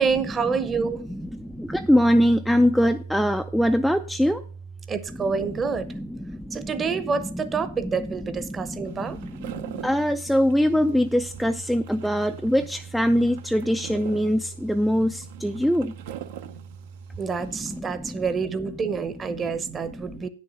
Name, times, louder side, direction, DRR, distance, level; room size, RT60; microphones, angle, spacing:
voice 1, 0.0-1.0 4.9-5.9 6.5-9.2 17.2-20.3, right 5 dB, 20° right, 13 dB, 0.9 m, -27 dB
voice 2, 0.8-4.4 5.2-5.3 5.9-7.0 7.3-8.1 8.6-15.9 17.4-18.3 19.9-20.3, equal, ahead, 7 dB, 0.4 m, -23 dB
sound 1, 8.8-17.8, right 11 dB, 55° right, 0.7 m, -43 dB
9.1 x 6.6 x 5.3 m, 0.40 s
hypercardioid pair, 110°, 0 cm